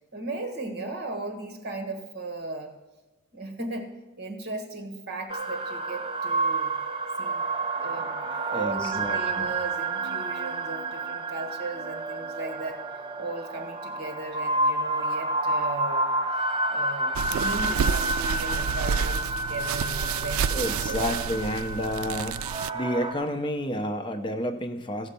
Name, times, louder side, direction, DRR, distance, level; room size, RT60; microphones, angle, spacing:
voice 1, 0.1-2.7 3.3-3.9 4.2-6.7 7.2-7.5 7.8-12.8 13.2-16.1 16.7-21.1, right 2 dB, 55° right, 6 dB, 1.5 m, -36 dB
sound 1, 5.3-23.1, right 2 dB, 25° right, 0.7 m, -30 dB
voice 2, 8.3-9.5 20.5-22.4 22.7-25.1, equal, 25° left, 7 dB, 0.7 m, -30 dB
sound 2, 17.1-22.7, right 7 dB, 85° right, 0.3 m, -29 dB
15.0 x 5.3 x 6.7 m, 1.1 s
head